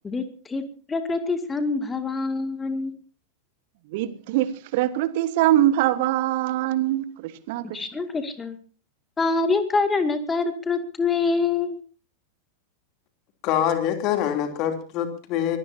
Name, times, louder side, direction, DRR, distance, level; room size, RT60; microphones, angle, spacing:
voice 1, 0.0-0.6 0.9-2.9 7.7-8.6 9.2-11.8, left 4 dB, 15° left, 2.2 m, -25 dB
voice 2, 3.9-7.9, right 13 dB, 50° right, 1.3 m, -23 dB
voice 3, 13.4-15.6, left 10 dB, 40° left, 3.0 m, -25 dB
24.0 x 18.5 x 2.8 m
figure-of-eight pair, 90°, 0 cm